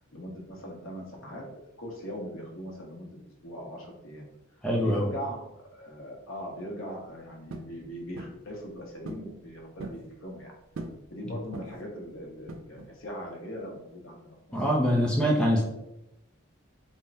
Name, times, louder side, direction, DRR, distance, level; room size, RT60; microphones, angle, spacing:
voice 1, 0.0-1.4 1.8-3.2 3.4-4.2 4.8-10.5 11.1-14.6, equal, 75° left, -1 dB, 0.9 m, -40 dB
voice 2, 4.6-5.1 14.5-15.6, equal, 5° left, -2 dB, 0.4 m, -24 dB
sound 1, 7.5-7.8 8.2-8.4 9.1-9.3 9.6-10.1 10.8-11.1 11.5-11.9 12.5-13.0, right 2 dB, 75° right, 0.4 m, -40 dB
3.5 x 2.1 x 4.0 m, 0.90 s
head